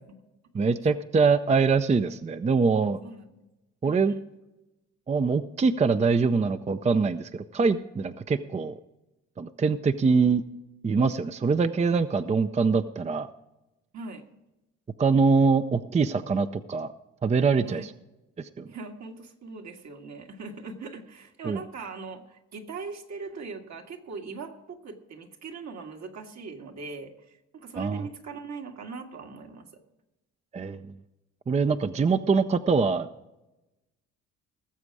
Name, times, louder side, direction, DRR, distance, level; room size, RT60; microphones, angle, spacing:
voice 1, 0.5-3.0 3.8-4.1 5.1-8.7 9.4-10.4 10.8-13.3 15.0-16.9 17.2-17.9 18.4-18.7 21.4-21.6 27.8-28.1 30.5-30.9 31.5-33.1, right 4 dB, 25° right, 11 dB, 0.5 m, -24 dB
voice 2, 3.0-3.5 3.8-4.2 13.9-14.2 17.6-17.9 18.7-29.6, right 4 dB, 65° right, 3 dB, 1.9 m, -41 dB
18.5 x 7.4 x 4.8 m, 0.98 s
cardioid pair, 90°, 30 cm